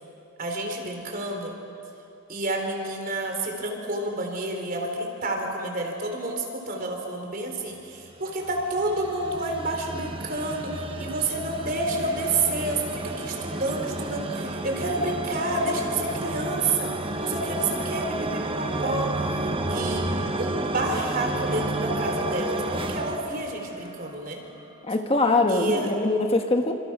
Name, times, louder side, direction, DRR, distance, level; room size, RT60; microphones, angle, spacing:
voice 1, 0.4-1.5 2.3-16.9 17.2-19.1 19.7-24.4 25.5-25.9, right 2 dB, 45° right, 3 dB, 4.0 m, -29 dB
sound 1, 8.1-24.2, right 2 dB, 25° right, 1.3 m, -31 dB
voice 2, 24.8-26.7, left 2 dB, 30° left, 4 dB, 1.3 m, -22 dB
28.0 x 27.5 x 6.1 m, 2.7 s
head